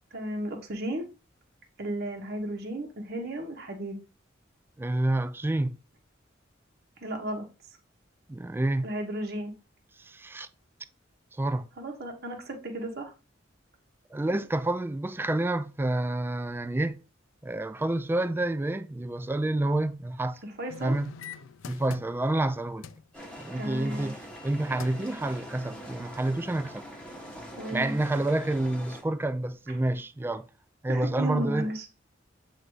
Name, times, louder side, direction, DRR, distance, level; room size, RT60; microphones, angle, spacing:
voice 1, 0.1-1.1 1.8-4.0 7.0-7.4 8.8-9.5 11.8-13.1 20.4-21.0 23.6-24.1 27.6-27.9 30.9-31.9, right 1 dB, 55° right, 1.2 m, -34 dB
voice 2, 4.8-5.8 8.3-8.9 10.0-10.5 11.4-11.7 14.1-17.0 17.4-20.4 20.8-21.1 21.7-22.9 23.4-24.1 24.4-26.8 27.7-30.5 30.8-31.7, right 1 dB, 10° right, 0.3 m, -28 dB
sound 1, 20.7-22.5 22.8-23.1 24.4-24.5 24.8-25.1 25.6-25.7, left 6 dB, 90° left, 0.4 m, -44 dB
sound 2, 23.1-29.0, equal, 5° left, 1.3 m, -43 dB
7.8 x 2.7 x 4.7 m
head